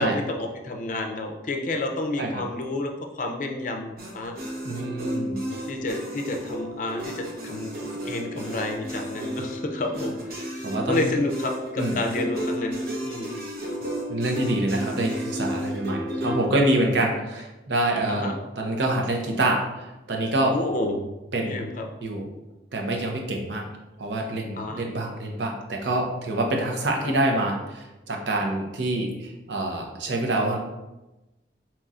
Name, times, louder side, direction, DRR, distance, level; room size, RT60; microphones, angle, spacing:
voice 1, 0.0-4.3 5.7-7.7 8.1-10.5 10.9-12.8 13.0-13.3 18.1-18.3 20.5-21.0 21.4-21.8 24.6-24.8 27.0-27.1, left 2 dB, 45° left, 3 dB, 0.5 m, -30 dB
sound 1, 4.0-16.5, equal, 55° right, 0.9 m, -32 dB
voice 2, 4.6-5.4 10.6-11.1 11.8-12.0 14.1-20.6 21.3-21.5 22.0-22.3 22.7-23.6 24.0-30.6, right 1 dB, 85° right, 1 dB, 0.7 m, -26 dB
5.4 x 3.0 x 2.4 m, 1.0 s
head